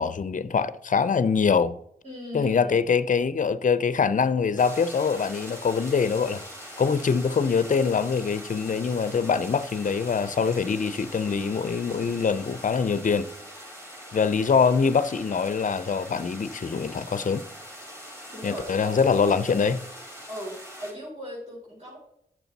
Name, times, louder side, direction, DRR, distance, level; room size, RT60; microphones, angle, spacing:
voice 1, 0.0-1.8 2.3-6.4 6.8-13.3 14.1-17.4 18.4-19.8, left 5 dB, 50° left, 0.6 m, -24 dB
voice 2, 2.0-2.9 18.3-18.9 20.3-22.0, equal, 40° right, 4.3 m, -38 dB
sound 1, 4.6-20.9, equal, 15° right, 4.3 m, -43 dB
9.8 x 7.0 x 4.1 m
cardioid pair, 60°, 17 cm